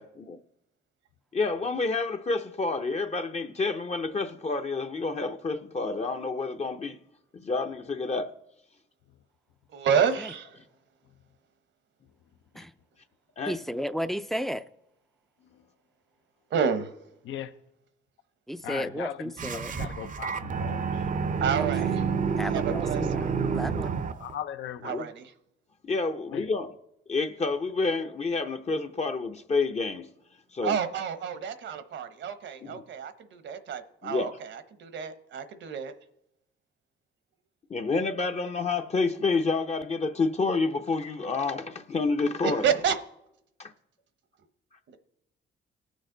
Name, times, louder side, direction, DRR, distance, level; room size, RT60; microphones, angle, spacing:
voice 1, 0.0-0.4 1.3-7.0 7.3-8.3 12.5-12.6 13.4-13.6 23.1-23.2 24.9-25.1 25.8-26.7 27.1-30.1 30.5-30.8 32.6-32.8 34.0-34.4 37.7-42.7 43.6-43.7, left 3 dB, 35° left, 0.7 m, -29 dB
voice 2, 9.7-10.5 16.5-16.9 21.4-22.0 22.5-23.3 24.8-25.3 30.6-35.9 42.4-43.0, right 7 dB, 70° right, 1.0 m, -29 dB
voice 3, 13.5-14.6 18.5-19.7 21.5-21.9 22.4-24.0, equal, ahead, 0.4 m, -33 dB
voice 4, 18.6-21.0 24.2-24.9 26.3-26.5, left 10 dB, 75° left, 0.7 m, -38 dB
sound 1, 19.4-24.3, right 6 dB, 40° right, 0.6 m, -29 dB
18.5 x 6.4 x 3.9 m
cardioid pair, 90°, 20 cm